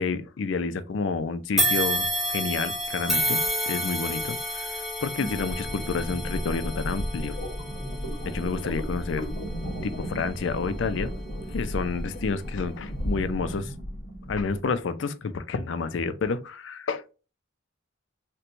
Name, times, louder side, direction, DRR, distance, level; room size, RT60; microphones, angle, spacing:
voice 1, 0.0-7.4 8.2-9.3 9.8-11.1 11.5-13.7 14.3-17.1, left 4 dB, 65° left, 0.4 m, -30 dB
sound 1, 1.6-10.9 11.4-11.6 12.5-12.6, equal, ahead, 0.6 m, -30 dB
sound 2, 5.2-14.6, equal, 85° left, 1.1 m, -34 dB
4.3 x 2.2 x 2.5 m
head